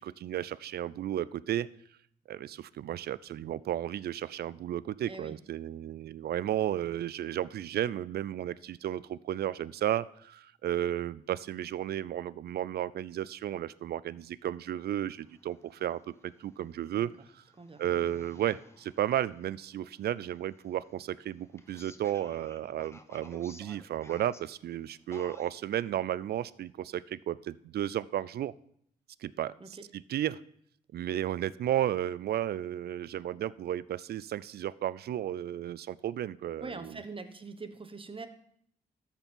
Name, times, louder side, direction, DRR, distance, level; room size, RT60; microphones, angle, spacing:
voice 1, 0.0-1.7 2.3-17.4 17.8-28.5 29.2-29.5 29.9-30.4 30.9-37.0, right 11 dB, 70° right, 19 dB, 0.4 m, -33 dB
sound 1, 15.2-25.9, left 2 dB, 15° left, 1.0 m, -56 dB
voice 2, 17.6-18.1 29.6-29.8 36.6-38.3, right 3 dB, 30° right, 9 dB, 1.1 m, -43 dB
13.5 x 4.4 x 5.3 m, 0.68 s
cardioid pair, 55°, 17 cm